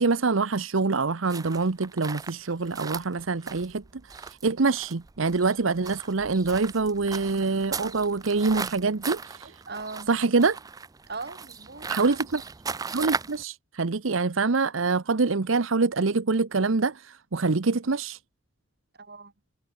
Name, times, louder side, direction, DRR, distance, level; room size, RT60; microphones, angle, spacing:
voice 1, 0.0-9.6 10.1-10.6 11.9-12.4 12.9-18.2, right 4 dB, 80° right, 0.8 m, -25 dB
sound 1, 1.3-13.4, right 5 dB, 20° right, 0.4 m, -37 dB
voice 2, 9.4-10.1 11.1-12.2 18.9-19.3, right 4 dB, 50° right, 2.7 m, -39 dB
head